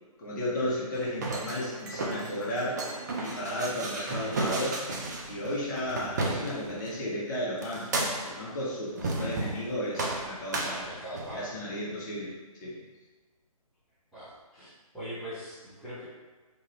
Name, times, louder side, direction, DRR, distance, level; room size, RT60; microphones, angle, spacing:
voice 1, 0.2-2.8 3.2-4.8 5.3-10.9 11.3-12.3 12.6-12.8, equal, 30° left, -6 dB, 0.9 m, -34 dB
sound 1, 0.9-6.9 7.6-8.5 9.0-9.7 10.0-11.4, right 2 dB, 30° right, 0.3 m, -33 dB
voice 2, 10.8-11.6 14.1-16.0, equal, ahead, -16 dB, 0.8 m, -41 dB
3.0 x 2.5 x 3.1 m, 1.3 s
figure-of-eight pair, 140°, 19 cm